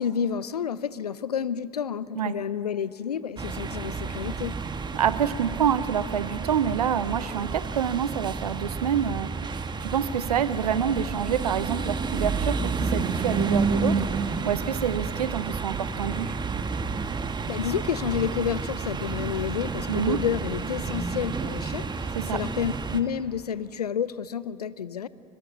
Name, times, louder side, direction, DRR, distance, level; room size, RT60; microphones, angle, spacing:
voice 1, 0.0-4.5 17.5-25.1, left 8 dB, 85° left, 18 dB, 0.6 m, -30 dB
sound 1, 3.4-23.0, right 4 dB, 20° right, 1.3 m, -30 dB
voice 2, 4.9-16.4 19.9-20.2 22.2-22.4, right 8 dB, 80° right, 15 dB, 0.7 m, -27 dB
22.5 x 21.0 x 9.1 m, 2.8 s
figure-of-eight pair, 65°, 19 cm